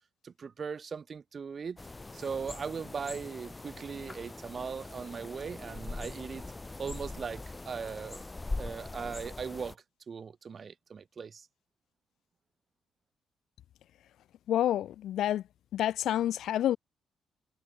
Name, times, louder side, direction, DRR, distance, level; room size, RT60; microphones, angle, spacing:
voice 1, 0.2-1.8 2.1-6.4 6.8-8.2 8.6-11.5, right 6 dB, 45° right, 0.9 m, -39 dB
sound 1, 1.8-9.8, left 2 dB, 20° left, 3.5 m, -42 dB
voice 2, 14.5-15.4 15.7-16.8, left 12 dB, 75° left, 0.3 m, -28 dB
cardioid pair, 90°, 0 cm